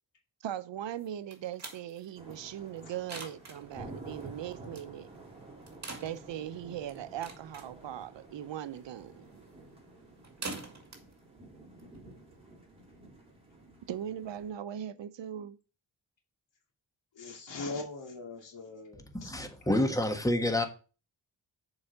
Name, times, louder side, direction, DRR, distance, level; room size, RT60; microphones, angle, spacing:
voice 1, 0.4-5.1 6.0-9.2 13.9-15.6, right 10 dB, 75° right, 0.8 m, -39 dB
sound 1, 1.0-12.4, right 3 dB, 40° right, 2.2 m, -48 dB
sound 2, 2.2-14.5, right 2 dB, 15° right, 3.4 m, -51 dB
voice 2, 17.1-19.3, left 3 dB, 75° left, 2.4 m, -41 dB
voice 3, 19.1-20.7, left 1 dB, 10° left, 1.4 m, -28 dB
7.0 x 4.8 x 6.6 m
cardioid pair, 90°, 44 cm